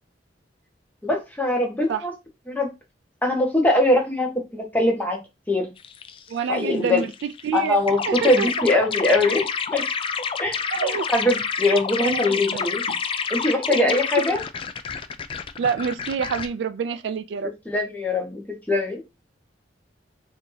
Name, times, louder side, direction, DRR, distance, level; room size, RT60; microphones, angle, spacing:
voice 1, 1.0-2.1 2.5-2.7 3.2-5.2 5.5-5.7 6.5-7.0 7.5-9.9 10.4-12.8 13.3-14.4 17.7-18.4 18.7-19.1, left 2 dB, 10° left, 1.1 m, -22 dB
sound 1, 5.8-6.5 6.8-16.5, left 6 dB, 30° left, 0.3 m, -28 dB
voice 2, 6.3-7.8 8.1-8.5 10.7-11.1 12.0-13.0 13.7-14.0 15.6-17.5, right 6 dB, 70° right, 0.3 m, -27 dB
2.8 x 2.7 x 3.8 m
head